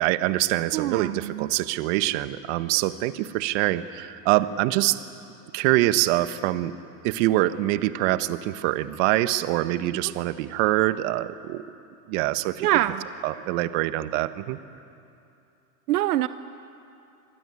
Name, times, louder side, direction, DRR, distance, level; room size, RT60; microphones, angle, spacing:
voice 1, 0.0-5.0 5.5-6.7 7.0-11.6 12.1-12.7 13.2-14.6, right 16 dB, 55° right, 12 dB, 1.3 m, -24 dB
voice 2, 0.7-1.5 12.6-13.1 15.9-16.3, right 15 dB, 80° right, 13 dB, 0.9 m, -24 dB
27.5 x 20.5 x 9.8 m, 2.6 s
supercardioid pair, 130°, 45 cm